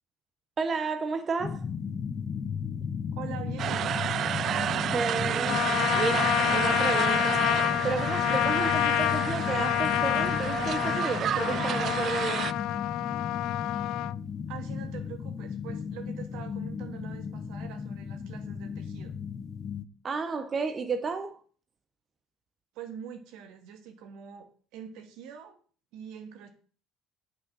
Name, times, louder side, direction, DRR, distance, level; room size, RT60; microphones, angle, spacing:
voice 1, 0.6-1.6 4.9-5.6 5.9-7.4 7.8-12.5 20.0-21.4, right 4 dB, 30° right, 0.9 m, -32 dB
sound 1, 1.4-19.8, left 6 dB, 30° left, 0.9 m, -35 dB
voice 2, 3.2-4.0 14.5-19.1 22.7-25.6 25.9-26.5, right 9 dB, 75° right, 1.9 m, -44 dB
sound 2, 3.6-12.5, right 10 dB, 50° right, 0.4 m, -31 dB
Trumpet, 5.5-14.1, left 15 dB, 65° left, 0.3 m, -28 dB
8.2 x 6.2 x 6.2 m
cardioid pair, 115°, 0 cm